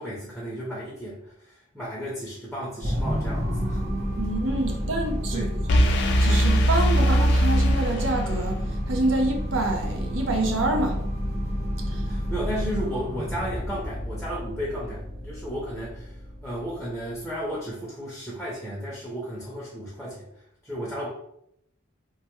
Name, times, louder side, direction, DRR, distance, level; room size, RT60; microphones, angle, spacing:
voice 1, 0.0-3.8 5.3-5.5 11.9-16.1 16.4-20.3 20.6-21.1, equal, ahead, 0.6 m, -34 dB
sound 1, 2.8-17.3, equal, 50° right, 1.5 m, -30 dB
voice 2, 4.2-5.8 6.2-8.6 8.9-11.0 11.9-12.0, right 2 dB, 80° right, 0.6 m, -27 dB
sound 2, 5.7-8.6, equal, 55° left, 0.4 m, -21 dB
3.3 x 2.1 x 3.0 m
head